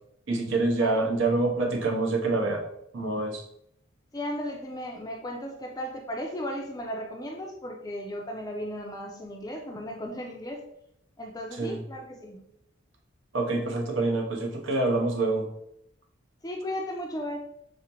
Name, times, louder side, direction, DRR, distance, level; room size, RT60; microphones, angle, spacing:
voice 1, 0.3-2.6 2.9-3.4 11.6-11.8 13.3-15.5, right 2 dB, 75° right, 1 dB, 0.7 m, -26 dB
voice 2, 4.1-10.6 11.2-12.4 16.4-17.4, equal, 20° left, 2 dB, 0.4 m, -35 dB
4.8 x 2.1 x 2.9 m, 0.75 s
head